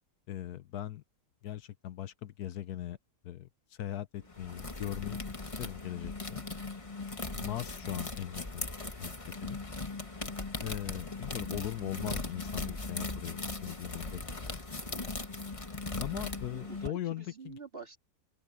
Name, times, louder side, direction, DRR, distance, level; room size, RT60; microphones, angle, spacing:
voice 1, 0.3-1.0 1.4-3.0 3.2-3.5 3.8-6.4 7.3-8.7 9.0-9.1 9.4-9.6 10.6-14.6 16.0-17.6, left 12 dB, 75° left, 1.3 m, -39 dB
sound 1, 4.3-16.9, left 3 dB, 20° left, 1.5 m, -39 dB
voice 2, 10.2-10.6 16.4-18.0, right 4 dB, 35° right, 3.4 m, -48 dB
open air
omnidirectional pair, 1.7 m